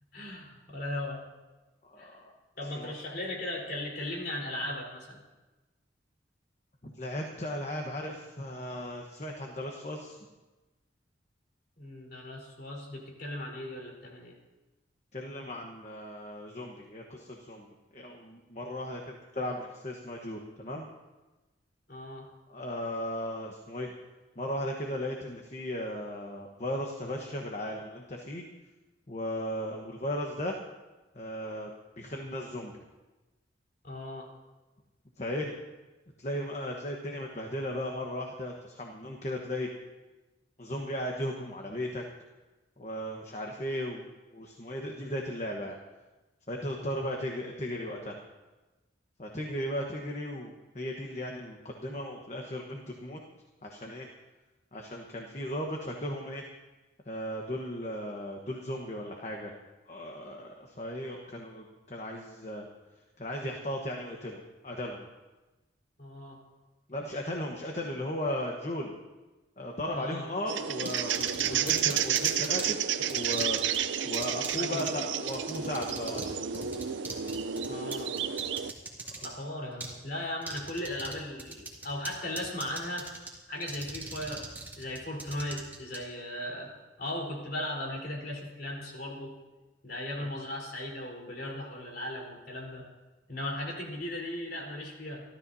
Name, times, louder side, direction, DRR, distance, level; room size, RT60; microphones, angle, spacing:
voice 1, 0.1-1.2 2.0-2.2 2.6-5.2 11.8-14.3 21.9-22.3 33.8-34.3 46.8-47.1 66.0-66.4 69.9-70.3 71.4-71.7 74.6-75.1 77.7-78.2 79.2-83.1 83.5-84.4 84.8-86.7 87.0-89.3 89.8-92.8 93.3-95.2, left 1 dB, 55° left, -2 dB, 4.1 m, -37 dB
voice 2, 1.8-2.3 2.7-2.9 6.8-10.2 15.1-17.7 17.9-20.9 22.5-23.9 24.3-28.4 29.1-30.6 31.1-31.7 32.0-32.7 35.2-35.5 36.2-39.7 40.6-42.0 42.8-44.1 44.3-45.8 46.5-48.2 49.2-53.2 53.6-54.1 54.7-56.4 57.0-59.5 59.9-62.6 63.2-65.1 66.9-68.9 69.6-73.6 74.0-76.7 79.2-79.3 90.2-90.3, left 1 dB, 40° left, 0 dB, 1.2 m, -36 dB
sound 1, 70.5-78.7, right 9 dB, 90° right, 0.6 m, -31 dB
sound 2, 70.9-72.7 73.1-73.8 74.1-74.5 74.8-74.9 75.3-76.3 76.5-79.3 79.8-79.9 80.4-81.1 81.4-82.1 82.4-83.3 83.6-86.0, right 3 dB, 10° right, 2.4 m, -38 dB
28.0 x 13.0 x 2.8 m, 1.1 s
head